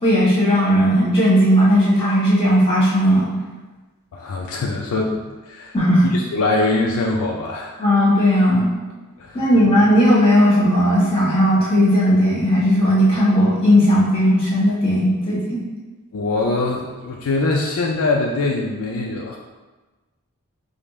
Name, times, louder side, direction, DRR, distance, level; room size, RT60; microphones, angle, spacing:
voice 1, 0.0-3.3 5.7-6.1 7.8-8.7 9.3-15.6, equal, 25° left, -7 dB, 1.2 m, -16 dB
voice 2, 4.1-5.8 6.1-7.8 9.2-9.5 16.1-19.4, left 2 dB, 65° left, 0 dB, 0.4 m, -23 dB
5.1 x 2.1 x 3.0 m, 1.2 s
head